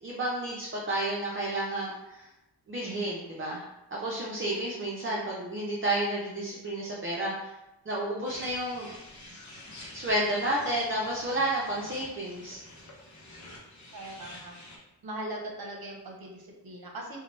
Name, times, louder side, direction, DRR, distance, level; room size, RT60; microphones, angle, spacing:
voice 1, 0.0-2.2 2.7-3.6 3.9-7.3 7.9-8.9 9.9-12.6, right 1 dB, 30° right, -5 dB, 0.5 m, -31 dB
sound 1, 8.3-14.8, left 1 dB, 45° left, 0.7 m, -48 dB
voice 2, 13.9-14.5 15.0-17.2, right 1 dB, 60° right, 1 dB, 0.8 m, -40 dB
2.8 x 2.2 x 3.0 m, 0.95 s
cardioid pair, 60°, 41 cm